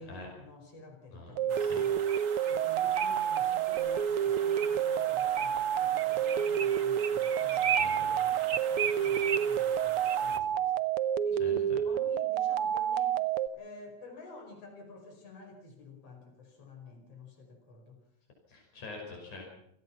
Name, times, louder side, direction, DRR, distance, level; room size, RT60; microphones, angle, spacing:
voice 1, 0.0-10.7 11.2-13.2 13.5-18.0, left 3 dB, 55° left, 2 dB, 6.3 m, -51 dB
voice 2, 1.1-1.8 2.4-2.5 7.8-8.1 10.3-10.5 11.4-11.8 18.5-19.5, left 3 dB, 85° left, 0 dB, 7.0 m, -46 dB
sound 1, 1.4-13.5, right 9 dB, 65° right, 1.6 m, -29 dB
sound 2, 1.5-10.4, right 7 dB, 85° right, 0.7 m, -37 dB
28.5 x 18.0 x 5.9 m, 0.76 s
omnidirectional pair, 3.3 m